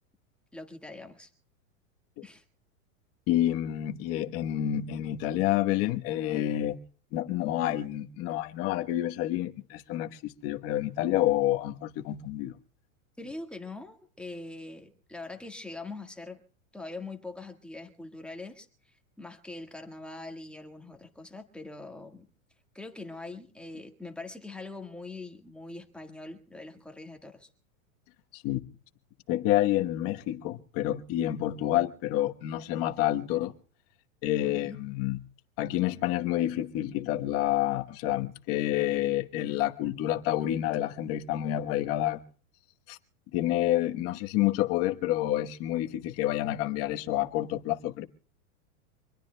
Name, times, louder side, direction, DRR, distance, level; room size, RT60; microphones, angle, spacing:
voice 1, 0.5-1.3 2.2-2.4 13.2-16.4 16.7-18.7 19.2-22.2 22.7-27.5 34.4-34.8, left 2 dB, ahead, 1.6 m, -42 dB
voice 2, 3.3-6.8 7.1-12.5 28.3-28.6 29.3-33.5 34.2-35.2 35.6-42.2 42.9-43.0 43.3-48.0, left 13 dB, 35° left, 1.2 m, -28 dB
26.0 x 21.0 x 2.2 m
supercardioid pair, 150°, 41 cm